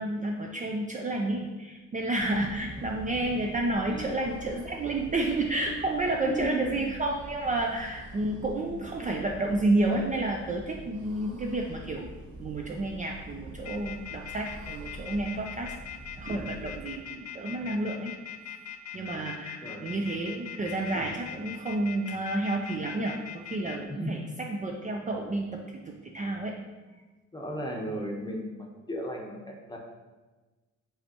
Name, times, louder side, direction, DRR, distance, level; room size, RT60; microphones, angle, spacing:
voice 1, 0.0-12.1 12.4-15.7 16.2-18.1 18.9-23.2 23.5-25.4 25.9-26.6, right 2 dB, 25° right, 1 dB, 0.4 m, -30 dB
sound 1, 2.1-16.8, right 1 dB, 70° right, 1.1 m, -46 dB
voice 2, 6.3-6.8 8.4-8.7 15.5-15.6 19.6-20.0 23.9-24.4 27.3-29.8, equal, 15° left, 0 dB, 0.9 m, -36 dB
sound 2, 13.6-23.8, left 10 dB, 65° left, 0.5 m, -41 dB
5.5 x 3.4 x 2.8 m, 1.2 s
cardioid pair, 90°, 30 cm